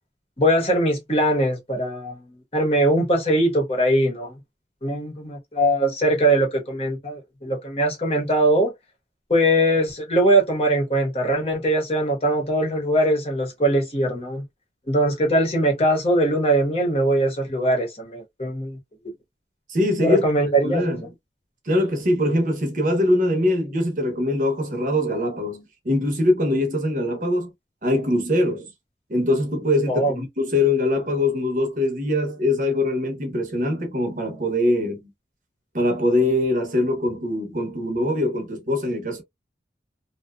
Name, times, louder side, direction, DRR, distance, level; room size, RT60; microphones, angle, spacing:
voice 1, 0.4-4.3 4.8-8.7 9.3-14.4 14.9-18.8 20.0-21.0 29.9-30.2, right 1 dB, 35° left, 0.9 m, -21 dB
voice 2, 19.7-20.2 20.6-21.0 21.7-27.5 27.8-28.7 29.1-35.0 35.7-39.2, left 1 dB, 45° right, 0.8 m, -22 dB
2.6 x 2.2 x 2.2 m
head